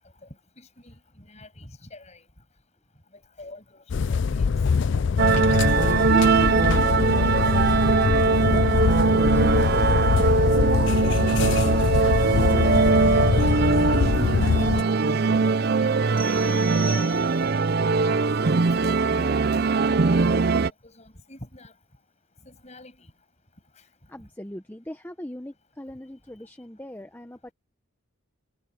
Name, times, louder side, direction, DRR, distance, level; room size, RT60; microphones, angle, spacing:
voice 1, 0.6-2.2 3.1-4.5 14.6-18.3 18.7-20.5 20.8-21.7 22.4-23.1, left 2 dB, 30° left, 7.5 m, -46 dB
sound 1, 3.9-14.8, left 5 dB, 55° left, 0.4 m, -23 dB
sound 2, 5.2-20.7, right 4 dB, 45° right, 0.5 m, -21 dB
voice 2, 5.9-10.1 10.4-13.2 24.1-27.5, left 1 dB, 10° left, 0.8 m, -40 dB
sound 3, 16.2-17.7, right 4 dB, 25° right, 1.6 m, -38 dB
head